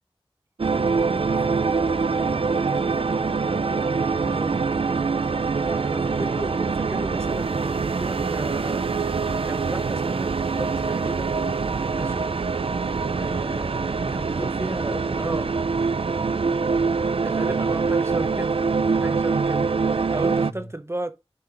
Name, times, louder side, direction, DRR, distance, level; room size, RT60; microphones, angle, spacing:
sound 1, 0.6-20.5, right 4 dB, 65° right, 0.4 m, -24 dB
voice 1, 1.3-4.8 5.7-6.2 13.3-13.7 14.0-15.6 17.4-17.8 20.4-20.7, left 1 dB, 40° left, 2.2 m, -42 dB
voice 2, 4.3-4.6 5.5-11.4 11.9-12.3 13.1-15.5 17.2-18.6 18.9-21.1, right 1 dB, 25° right, 1.0 m, -35 dB
6.8 x 5.4 x 3.7 m
wide cardioid pair, 45°, 10 cm